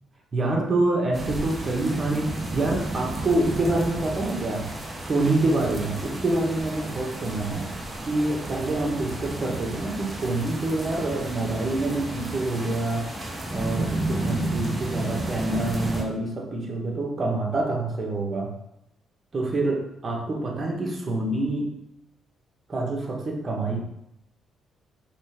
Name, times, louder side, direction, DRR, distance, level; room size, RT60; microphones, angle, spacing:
voice 1, 0.3-4.6 5.0-7.7 8.0-13.1 13.5-18.5 19.3-21.6 22.7-23.8, right 2 dB, 35° right, -1 dB, 1.6 m, -26 dB
sound 1, 1.1-16.0, right 1 dB, 20° right, 1.2 m, -32 dB
5.3 x 3.4 x 5.2 m, 0.80 s
cardioid pair, 90°, 0 cm